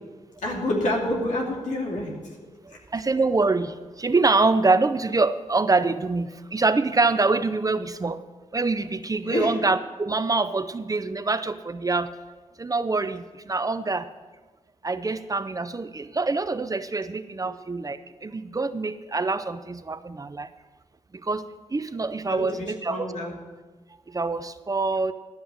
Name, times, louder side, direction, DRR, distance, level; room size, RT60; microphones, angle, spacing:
voice 1, 0.4-2.1 9.2-9.5 22.3-23.3, left 1 dB, 85° left, -2 dB, 2.7 m, -28 dB
voice 2, 2.6-8.2 8.5-12.1 12.6-14.1 14.8-20.5 21.1-21.4 21.7-23.1 24.1-25.1, right 3 dB, 30° right, 12 dB, 0.6 m, -25 dB
12.0 x 5.9 x 7.8 m, 1.3 s
cardioid pair, 75°, 12 cm